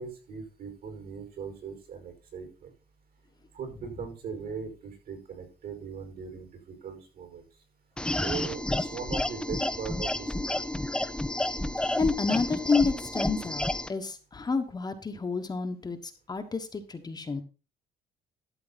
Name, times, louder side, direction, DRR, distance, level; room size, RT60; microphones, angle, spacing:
voice 1, 0.0-2.7 3.5-7.5 8.2-10.6, right 6 dB, 60° right, 4 dB, 5.3 m, -39 dB
sound 1, 8.0-13.9, left 1 dB, 5° left, 0.7 m, -30 dB
voice 2, 11.8-17.4, left 4 dB, 25° left, 6 dB, 1.3 m, -30 dB
12.5 x 7.0 x 4.1 m, 0.33 s
cardioid pair, 110°, 17 cm